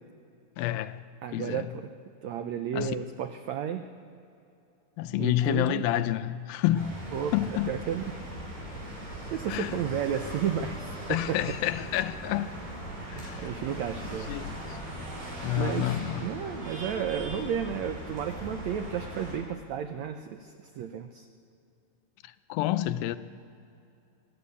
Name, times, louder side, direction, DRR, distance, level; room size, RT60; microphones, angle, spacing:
voice 1, 0.6-1.0 1.3-1.7 2.7-2.9 5.0-7.0 7.3-7.7 9.5-9.8 11.1-12.5 13.1-13.5 14.3-14.8 15.4-16.3 22.2-23.2, left 14 dB, 85° left, 2.4 m, -29 dB
voice 2, 1.2-1.9 2.2-3.8 5.2-5.8 7.1-8.0 9.3-11.4 13.0-14.3 15.6-21.3, right 8 dB, 85° right, 1.5 m, -33 dB
sound 1, 6.7-19.4, right 1 dB, 65° right, 7.0 m, -39 dB
23.0 x 14.0 x 8.3 m
omnidirectional pair, 4.3 m